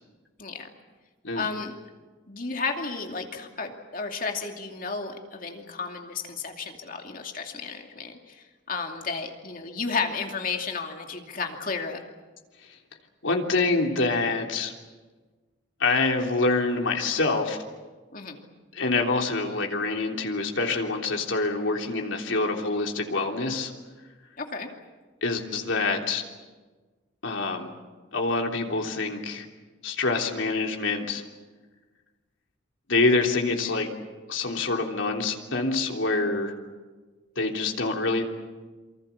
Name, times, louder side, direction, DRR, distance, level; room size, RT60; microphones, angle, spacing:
voice 1, 1.3-1.7 2.3-12.0 18.1-18.4 24.4-24.7, left 4 dB, 45° left, 3 dB, 2.6 m, -33 dB
voice 2, 13.2-14.7 15.8-17.6 18.7-23.7 25.2-26.2 27.2-27.7 28.1-29.4 29.8-31.2 32.9-33.9 34.3-36.5 37.3-38.2, left 3 dB, 80° left, 2 dB, 3.4 m, -26 dB
27.5 x 25.0 x 7.3 m, 1.3 s
head